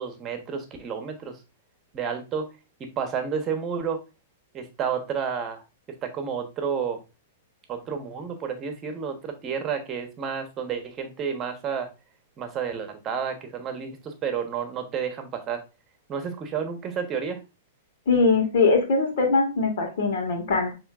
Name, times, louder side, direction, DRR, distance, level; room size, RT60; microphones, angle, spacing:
voice 1, 0.0-1.4 1.9-2.5 2.8-4.0 4.5-5.6 6.0-7.0 7.7-11.9 12.4-15.6 16.1-17.4, right 6 dB, 30° right, 6 dB, 1.1 m, -30 dB
voice 2, 18.1-20.7, left 4 dB, 65° left, 3 dB, 1.7 m, -21 dB
7.0 x 3.1 x 2.4 m, 0.27 s
hypercardioid pair, 120°, 0 cm